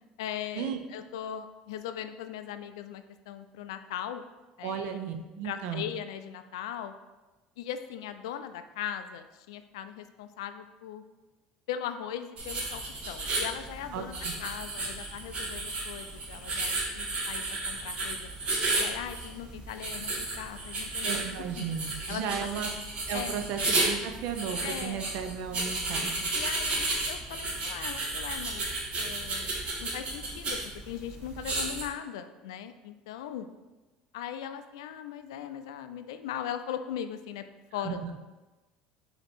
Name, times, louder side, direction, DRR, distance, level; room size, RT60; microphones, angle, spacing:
voice 1, 0.2-4.2 4.6-5.0 5.4-6.9 7.6-11.0 11.7-18.3 18.7-21.2 21.6-21.7 22.1-22.5 23.1-23.4 24.6-25.1 26.3-28.6 29.0-29.5 29.8-30.6 30.9-33.5 34.1-37.4 37.7-38.0, left 9 dB, 90° left, 9 dB, 0.3 m, -39 dB
voice 2, 4.6-5.9 13.9-14.3 21.0-22.7 23.1-26.3 37.8-38.2, right 7 dB, 70° right, 6 dB, 0.5 m, -35 dB
sound 1, 12.4-31.9, right 2 dB, 45° right, 1.2 m, -33 dB
4.4 x 2.8 x 4.1 m, 1.1 s
supercardioid pair, 95°, 3 cm